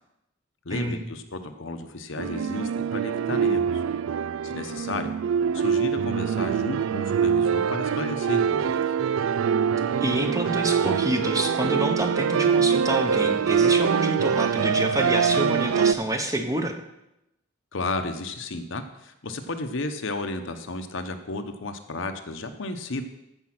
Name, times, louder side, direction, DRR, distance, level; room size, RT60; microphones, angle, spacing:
voice 1, 0.6-3.8 4.4-5.1 5.5-8.8 17.7-23.0, left 2 dB, 65° left, 7 dB, 1.0 m, -33 dB
sound 1, 2.2-15.9, right 7 dB, 80° right, 0.4 m, -24 dB
voice 2, 10.0-16.7, right 1 dB, 15° right, 4 dB, 1.1 m, -28 dB
14.5 x 5.4 x 6.1 m, 0.87 s
head